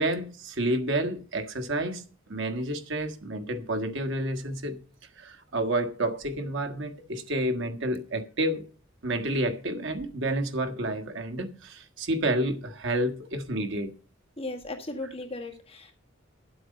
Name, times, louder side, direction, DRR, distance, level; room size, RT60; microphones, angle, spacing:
voice 1, 0.0-2.0 2.3-4.8 5.2-8.7 9.0-13.9, right 1 dB, 65° right, 1.5 m, -29 dB
voice 2, 14.4-15.9, left 2 dB, 30° left, 1.8 m, -36 dB
11.0 x 7.9 x 5.4 m
head